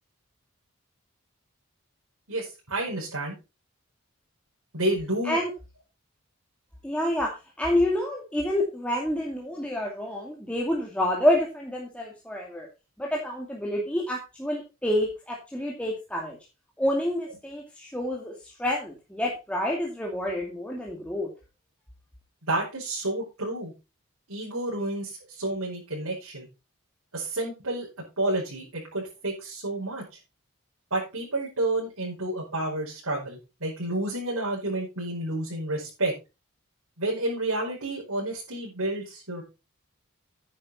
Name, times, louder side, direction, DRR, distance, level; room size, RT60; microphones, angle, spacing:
voice 1, 2.3-3.4 4.7-5.4 22.4-23.7 24.3-26.5 27.1-27.9 28.2-30.0 30.9-36.1 37.0-39.4, right 1 dB, 85° right, -6 dB, 5.8 m, -30 dB
voice 2, 6.8-7.3 7.6-12.7 13.0-16.4 16.8-18.3 18.6-21.3, left 1 dB, 5° left, -2 dB, 2.3 m, -28 dB
10.0 x 9.8 x 4.2 m, 0.28 s
head